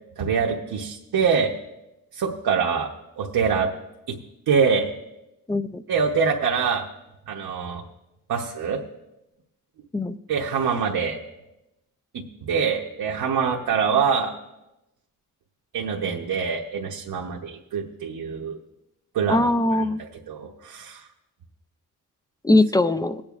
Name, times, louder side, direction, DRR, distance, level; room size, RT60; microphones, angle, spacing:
voice 1, 0.2-1.5 2.1-3.7 4.1-4.2 4.5-4.9 5.9-6.9 7.3-7.8 8.3-8.8 10.3-11.2 12.1-14.3 15.7-18.6 19.1-19.4 19.8-19.9 20.3-21.1, right 6 dB, 75° right, -1 dB, 1.0 m, -24 dB
voice 2, 5.5-5.8 9.9-10.2 19.3-20.0 22.4-23.2, left 2 dB, 10° left, 12 dB, 0.3 m, -20 dB
20.5 x 8.7 x 2.4 m, 0.93 s
wide cardioid pair, 125°, 36 cm